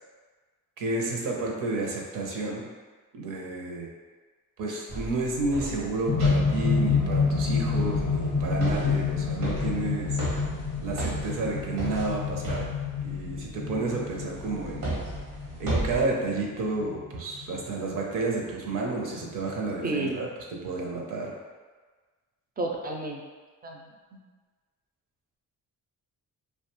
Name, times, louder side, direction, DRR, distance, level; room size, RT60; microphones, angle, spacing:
voice 1, 0.8-2.7 3.1-3.9 4.6-10.2 10.8-12.7 13.0-15.0 15.6-21.3, right 3 dB, 70° right, -1 dB, 0.6 m, -31 dB
sound 1, 4.9-13.5 14.1-16.0, right 1 dB, 90° right, 1.0 m, -35 dB
sound 2, 6.1-18.2 19.2-19.3, left 5 dB, 40° left, 0.5 m, -28 dB
voice 2, 19.8-20.2 22.6-23.2 23.6-23.8 24.1-24.2, right 2 dB, 30° right, 1 dB, 0.4 m, -31 dB
2.6 x 2.2 x 2.9 m, 1.4 s
cardioid pair, 90°, 34 cm